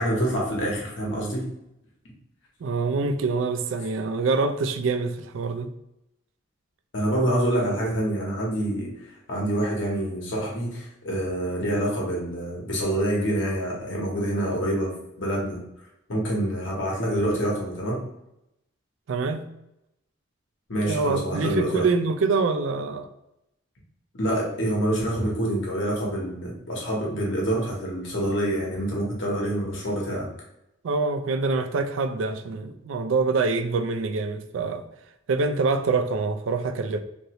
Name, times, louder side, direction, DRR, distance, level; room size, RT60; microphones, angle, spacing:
voice 1, 0.0-1.5 6.9-15.6 16.1-18.0 20.7-21.9 24.2-30.3, right 1 dB, 70° left, 1.0 m, -26 dB
voice 2, 2.6-5.7 19.1-19.5 20.9-23.1 30.8-34.8 35.3-37.0, right 4 dB, 70° right, 0.3 m, -25 dB
2.8 x 2.6 x 2.9 m
head